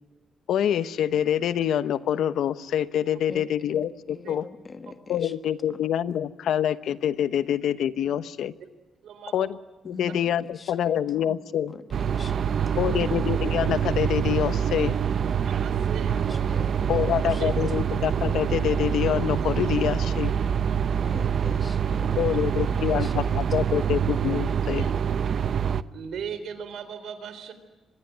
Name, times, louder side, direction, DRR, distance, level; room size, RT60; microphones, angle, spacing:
voice 1, 0.5-4.4 5.1-8.5 9.3-9.6 9.9-11.7 12.8-14.9 16.9-20.3 22.2-24.9, left 10 dB, 75° left, 14 dB, 0.9 m, -26 dB
voice 2, 3.3-5.3 5.7-5.8 9.8-10.7 11.2-11.4 11.7-12.6 12.8-12.9 16.1-17.4 21.0-23.8, left 4 dB, 25° left, 9 dB, 1.5 m, -43 dB
voice 3, 9.0-9.5 15.4-16.4 17.4-17.5 22.1-22.2 24.8-24.9 25.9-27.5, right 7 dB, 70° right, 11 dB, 3.7 m, -38 dB
sound 1, 11.9-25.8, right 8 dB, 50° right, 0.7 m, -25 dB
25.5 x 21.0 x 9.1 m, 1.2 s
cardioid pair, 165°, 0 cm